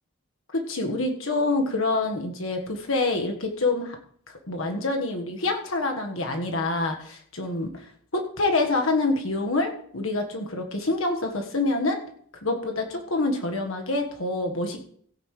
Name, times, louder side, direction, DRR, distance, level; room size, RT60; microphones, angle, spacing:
voice 1, 0.5-4.0 4.5-7.7 8.1-12.0 12.4-14.9, left 2 dB, 75° left, 3 dB, 1.6 m, -26 dB
16.0 x 9.2 x 3.3 m, 0.62 s
head